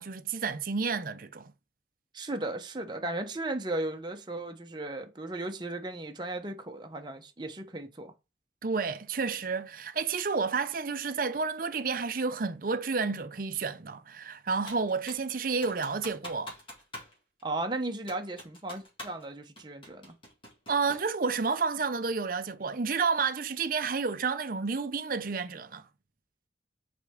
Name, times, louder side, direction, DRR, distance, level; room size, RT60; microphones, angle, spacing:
voice 1, 0.0-1.5 8.6-16.5 20.7-25.8, right 4 dB, 50° right, 0.6 m, -30 dB
voice 2, 2.1-8.1 17.4-20.1, right 2 dB, 25° right, 0.9 m, -36 dB
Computer keyboard, 14.7-15.3 15.6-17.1 17.4-17.5 18.1-19.2 19.6-21.1, left 1 dB, 30° left, 2.5 m, -45 dB
5.8 x 4.4 x 3.7 m
head